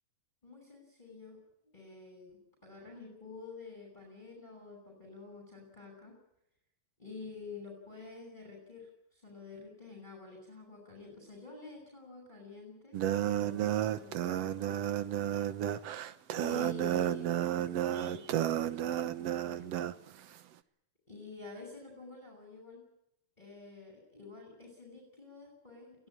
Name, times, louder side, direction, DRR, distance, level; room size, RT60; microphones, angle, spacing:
voice 1, 0.4-1.4 1.7-6.1 7.0-13.0 13.3-14.7 15.9-19.9 21.1-22.8 23.4-26.1, left 4 dB, 10° left, 1 dB, 6.2 m, -49 dB
sound 1, 12.9-19.9, right 11 dB, 90° right, 1.4 m, -32 dB
23.0 x 16.5 x 8.7 m, 0.80 s
omnidirectional pair, 4.3 m